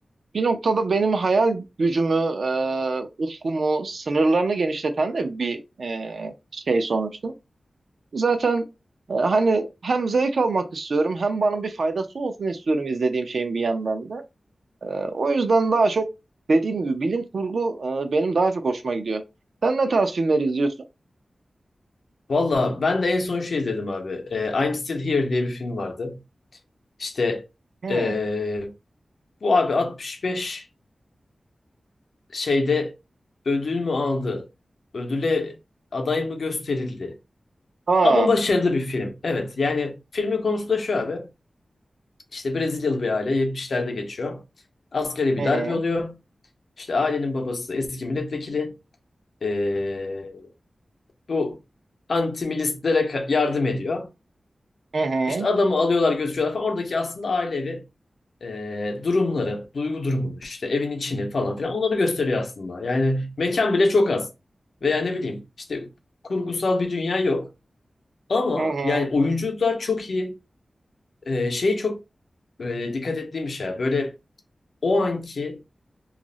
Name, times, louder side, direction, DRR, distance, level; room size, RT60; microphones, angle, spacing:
voice 1, 0.3-7.3 8.1-8.6 9.1-14.2 14.8-16.1 16.5-19.2 19.6-20.7 27.8-28.2 37.9-38.3 45.4-45.8 54.9-55.5 68.6-69.1, right 3 dB, 75° right, 0.5 m, -23 dB
voice 2, 22.3-26.2 27.0-27.4 27.9-28.7 29.4-30.6 32.3-32.9 33.5-34.5 34.9-35.6 35.9-37.1 38.0-41.3 42.3-44.4 44.9-46.2 46.8-48.8 49.4-50.5 51.3-51.6 52.1-54.1 55.3-57.8 58.4-64.3 64.8-65.9 66.2-67.5 68.3-70.4 71.3-72.0 72.6-74.1 74.8-75.6, left 3 dB, 75° left, 0.7 m, -24 dB
2.4 x 2.0 x 3.8 m
wide cardioid pair, 105°, 0 cm